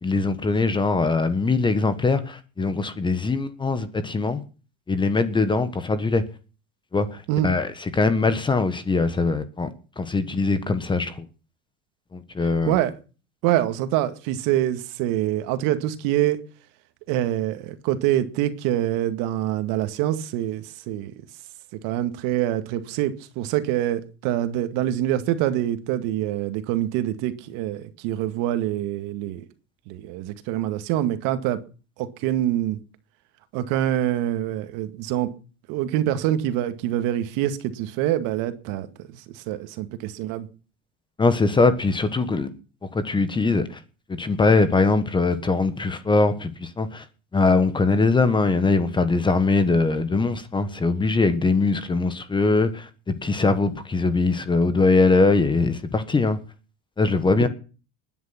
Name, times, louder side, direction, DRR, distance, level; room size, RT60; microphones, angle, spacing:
voice 1, 0.0-4.4 4.9-6.2 6.9-9.7 10.0-11.3 12.1-12.8 41.2-42.5 42.8-43.8 44.1-47.0 47.3-56.4 57.0-57.5, left 3 dB, 15° left, 1.3 m, -22 dB
voice 2, 13.4-16.4 17.1-21.1 21.8-29.4 29.9-31.6 32.0-32.8 33.5-35.3 35.7-38.9 39.1-40.5 57.4-57.5, right 13 dB, 60° right, 2.1 m, -25 dB
20.5 x 10.0 x 5.9 m
cardioid pair, 155°, 36 cm